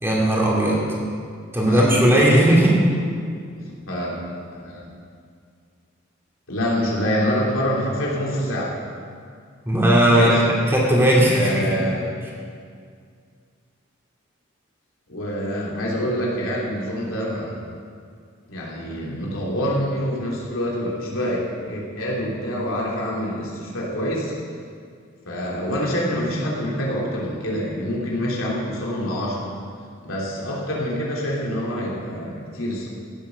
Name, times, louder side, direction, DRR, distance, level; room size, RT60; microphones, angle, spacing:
voice 1, 0.0-0.9 1.5-2.8 9.7-10.4 10.7-11.8, right 1 dB, 10° right, -4 dB, 2.4 m, -17 dB
voice 2, 3.5-4.1 4.5-4.8 6.5-8.7 10.1-10.4 11.3-12.1 15.1-17.6 18.5-24.3 25.2-29.5 30.0-32.9, equal, 90° left, -4 dB, 3.1 m, -26 dB
16.0 x 7.9 x 5.9 m, 2.2 s
head